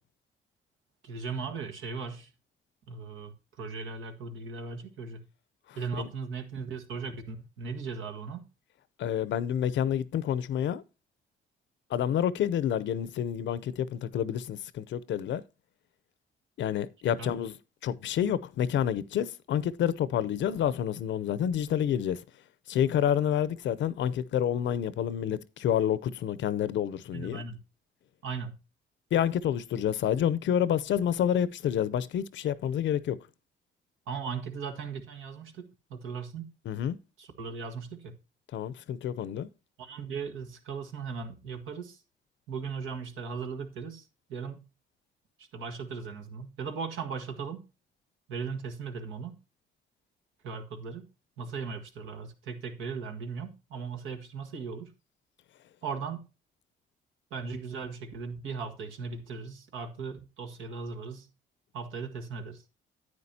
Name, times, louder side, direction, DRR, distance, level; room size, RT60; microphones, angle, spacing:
voice 1, 1.0-2.3 2.9-5.2 5.7-8.4 17.2-17.3 27.1-27.6 28.2-28.5 34.1-36.5 37.2-38.2 39.8-42.0 42.5-44.6 45.4-47.6 48.3-49.4 50.4-51.1 51.4-54.9 55.8-56.2 57.3-61.3 61.7-62.6, right 5 dB, 85° right, 1.6 m, -38 dB
voice 2, 5.7-6.1 9.0-10.8 11.9-15.4 16.6-17.6 17.8-22.2 22.7-27.4 29.1-33.2 36.7-37.0 38.5-39.5, left 9 dB, 70° left, 0.6 m, -28 dB
9.6 x 9.3 x 2.8 m
cardioid pair, 90°, 20 cm